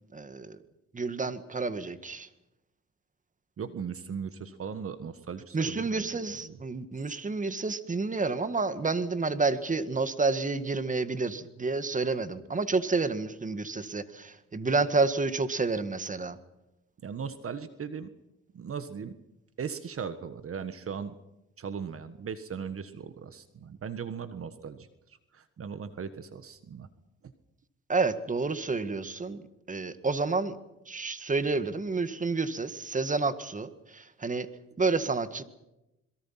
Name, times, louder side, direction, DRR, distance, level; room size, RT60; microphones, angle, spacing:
voice 1, 0.1-0.6 0.9-2.3 5.5-16.4 27.9-29.4 29.7-30.6 30.9-34.5 34.8-35.4, right 3 dB, 25° right, 11 dB, 1.9 m, -29 dB
voice 2, 3.6-6.6 17.0-18.1 18.5-19.1 19.6-21.1 21.6-26.9, right 6 dB, 50° right, 11 dB, 1.6 m, -38 dB
27.0 x 22.5 x 5.9 m, 0.92 s
cardioid pair, 90°, 30 cm